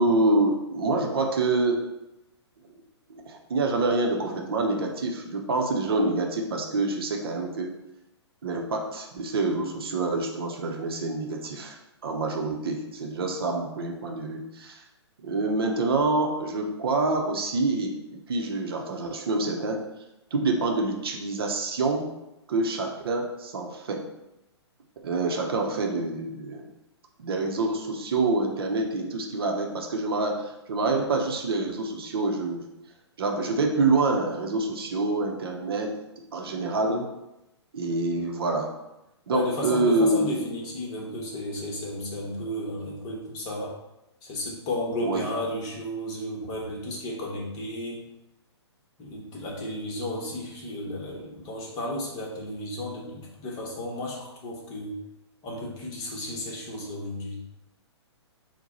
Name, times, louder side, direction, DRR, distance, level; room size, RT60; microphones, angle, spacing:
voice 1, 0.0-1.8 3.1-7.7 8.4-14.8 15.2-19.8 20.3-22.1 22.5-24.0 25.0-26.7 27.2-32.6 33.2-35.9 36.3-37.1 37.7-38.7 39.3-40.4 45.0-45.2, right 2 dB, 55° right, 2 dB, 0.7 m, -26 dB
voice 2, 39.3-43.8 44.2-48.1 49.0-55.0 55.4-57.4, left 1 dB, 25° left, -3 dB, 1.0 m, -33 dB
4.5 x 2.2 x 4.1 m, 0.92 s
figure-of-eight pair, 120°, 15 cm